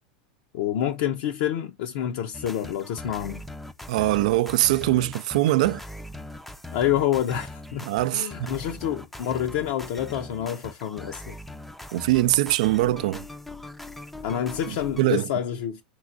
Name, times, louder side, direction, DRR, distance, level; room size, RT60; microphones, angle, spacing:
voice 1, 0.5-3.4 6.7-7.9 8.1-11.4 14.2-15.8, left 10 dB, 65° left, 0.5 m, -28 dB
sound 1, 2.3-15.0, left 1 dB, 5° left, 0.4 m, -41 dB
voice 2, 3.9-5.8 7.9-8.5 11.9-13.3 15.0-15.3, right 16 dB, 70° right, 0.3 m, -22 dB
4.5 x 3.9 x 2.5 m
hypercardioid pair, 105°, 4 cm